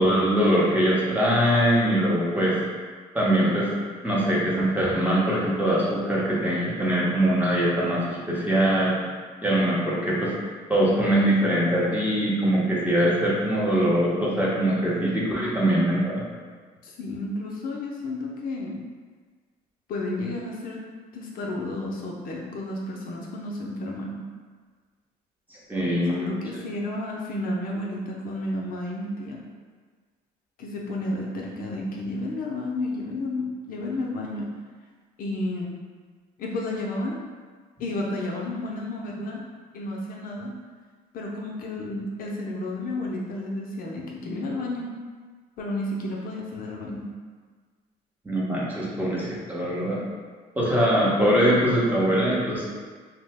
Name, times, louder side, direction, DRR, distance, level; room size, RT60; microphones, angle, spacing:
voice 1, 0.0-2.6 3.1-3.7 4.0-8.9 9.4-10.3 10.7-16.2 25.5-26.3 48.2-50.0 50.6-52.6, right 1 dB, 10° right, -6 dB, 0.7 m, -22 dB
voice 2, 16.8-18.8 19.9-20.8 21.1-24.2 25.8-29.4 30.6-34.5 35.2-35.7 36.4-37.2 37.8-39.4 39.7-40.5 41.1-44.9 45.6-47.1, left 2 dB, 60° left, -2 dB, 0.5 m, -32 dB
2.8 x 2.0 x 3.3 m, 1.5 s
cardioid pair, 110°, 17 cm